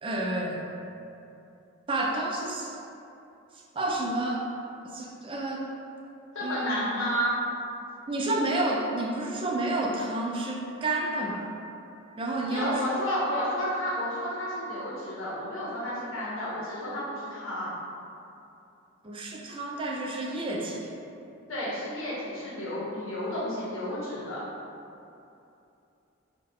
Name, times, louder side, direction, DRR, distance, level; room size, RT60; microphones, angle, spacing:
voice 1, 0.0-0.6 1.9-2.8 3.7-4.4 4.9-5.7 6.4-6.9 8.1-11.5 12.2-13.0 19.0-20.9, right 2 dB, 25° right, -1 dB, 0.3 m, -30 dB
voice 2, 6.3-7.4 12.5-17.7 21.5-24.4, equal, 80° left, -8 dB, 1.1 m, -31 dB
4.3 x 2.1 x 3.5 m, 2.7 s
head